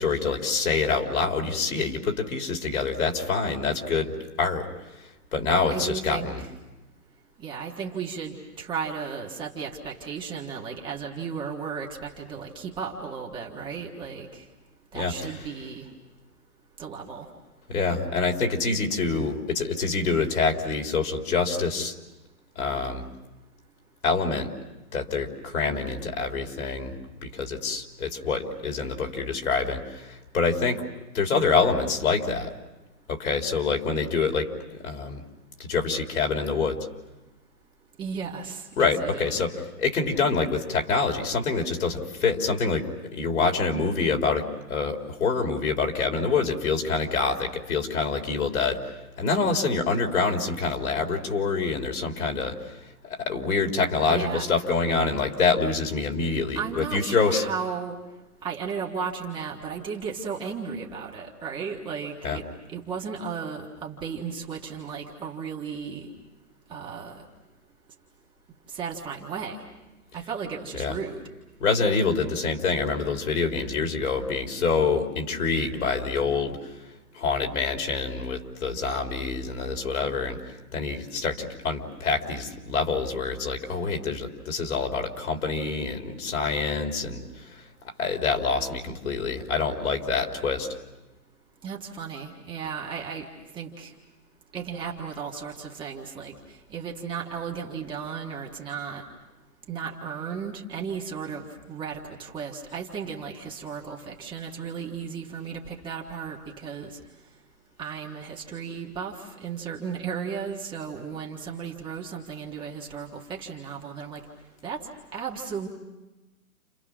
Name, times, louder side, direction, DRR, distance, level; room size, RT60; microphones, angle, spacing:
voice 1, 0.0-4.7 5.3-6.4 14.9-15.1 17.7-21.9 22.6-23.0 24.0-24.5 24.9-30.8 31.1-32.5 33.1-35.2 35.6-36.8 38.8-42.9 43.1-52.8 53.0-57.4 62.2-62.4 70.8-71.0 71.6-76.6 77.2-80.4 80.7-87.6 88.0-90.7, left 4 dB, 65° left, 2 dB, 3.9 m, -26 dB
voice 2, 5.7-6.5 7.4-14.4 14.9-15.9 16.8-17.3 38.0-39.4 54.1-54.4 56.5-58.0 58.4-66.1 66.7-67.2 68.7-69.6 70.1-71.2 91.6-93.3 93.5-93.9 94.5-99.0 99.7-107.0 107.8-114.2 114.6-114.8 115.1-115.7, right 6 dB, 10° right, -1 dB, 1.5 m, -35 dB
30.0 x 28.5 x 6.2 m, 1.1 s
hypercardioid pair, 155°, 45 cm